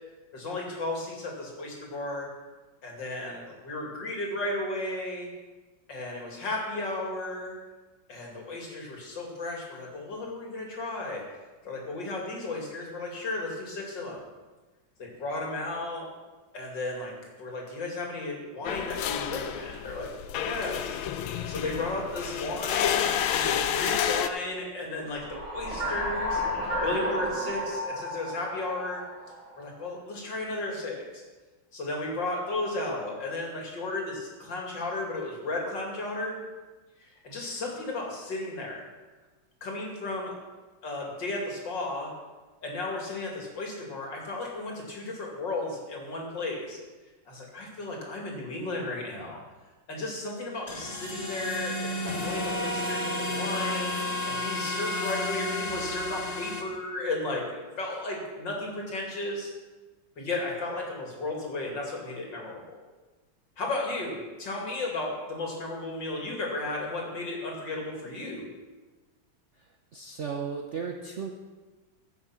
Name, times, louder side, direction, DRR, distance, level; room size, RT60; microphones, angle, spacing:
voice 1, 0.3-2.3 2.8-5.3 5.9-7.6 8.1-11.3 11.6-14.2 15.0-16.1 16.5-21.0 21.3-26.4 26.8-29.0 29.6-31.2 31.7-36.4 37.0-38.9 39.6-40.4 40.8-42.1 42.6-46.8 47.3-49.4 49.9-59.5 60.2-62.8 63.6-68.5, left 2 dB, 65° left, -1 dB, 3.1 m, -34 dB
sound 1, 18.6-24.3, left 9 dB, 85° left, 1.5 m, -29 dB
sound 2, 25.0-29.7, equal, 15° right, 4.9 m, -32 dB
sound 3, 50.7-56.6, left 1 dB, 25° left, 1.2 m, -32 dB
voice 2, 69.6-71.3, right 6 dB, 55° right, 2 dB, 0.8 m, -35 dB
15.0 x 6.8 x 6.0 m, 1.2 s
omnidirectional pair, 2.2 m